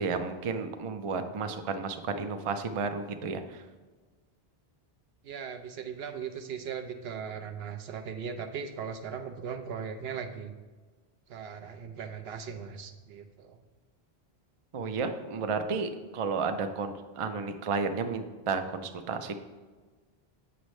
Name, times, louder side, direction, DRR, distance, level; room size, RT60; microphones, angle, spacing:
voice 1, 0.0-3.6 14.7-19.3, right 4 dB, 45° right, 7 dB, 0.5 m, -32 dB
voice 2, 5.2-10.5 11.3-13.6, right 7 dB, 75° right, 7 dB, 0.9 m, -38 dB
8.2 x 6.2 x 3.1 m, 1.4 s
omnidirectional pair, 1.0 m